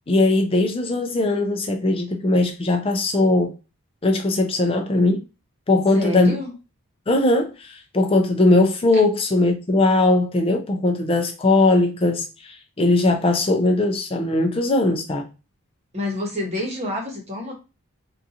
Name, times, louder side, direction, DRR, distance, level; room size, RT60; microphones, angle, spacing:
voice 1, 0.1-3.5 4.0-5.2 5.7-6.4 7.1-15.2, left 2 dB, 25° left, 0.4 m, -19 dB
voice 2, 5.9-6.5 15.9-17.5, left 1 dB, 30° right, 0.9 m, -28 dB
3.7 x 2.4 x 2.7 m
head